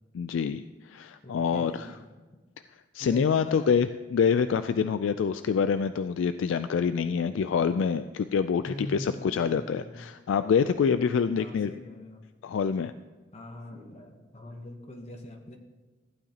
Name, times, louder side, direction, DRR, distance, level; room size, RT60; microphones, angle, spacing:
voice 1, 0.1-2.0 2.9-11.7 12.4-12.9, left 6 dB, 85° left, 11 dB, 0.3 m, -26 dB
voice 2, 1.2-2.1 3.0-3.7 8.7-10.1 11.3-12.2 13.3-15.6, left 1 dB, 35° left, 4 dB, 0.8 m, -42 dB
14.5 x 9.1 x 2.8 m, 1.3 s
head